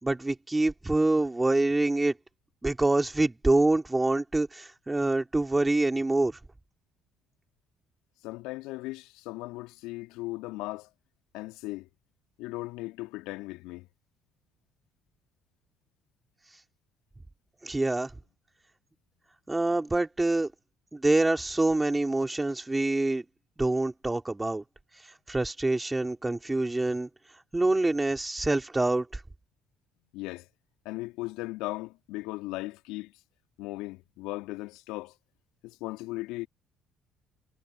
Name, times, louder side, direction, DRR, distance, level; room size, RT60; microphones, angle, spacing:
voice 1, 0.0-2.1 2.6-6.4 17.6-18.1 19.5-20.5 20.9-23.2 23.6-24.6 25.3-27.1 27.5-29.1, right 2 dB, 15° right, 4.2 m, -26 dB
voice 2, 8.2-10.9 11.3-11.9 12.4-13.9 30.1-30.5 30.8-33.1 33.6-35.1 35.6-36.5, left 20 dB, 70° left, 3.1 m, -37 dB
hypercardioid pair, 50°, 0 cm